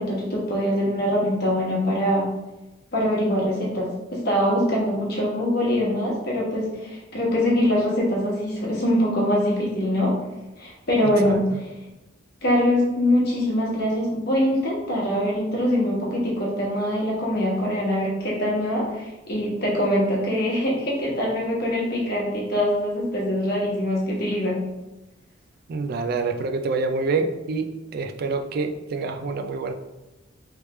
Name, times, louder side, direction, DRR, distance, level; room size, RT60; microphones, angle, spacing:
voice 1, 0.0-2.3 2.9-10.1 10.6-11.7 12.4-24.6, equal, 55° left, -4 dB, 1.2 m, -23 dB
voice 2, 25.7-27.6 27.9-29.7, right 4 dB, 50° right, 6 dB, 0.3 m, -26 dB
3.3 x 3.2 x 3.1 m, 1.0 s
head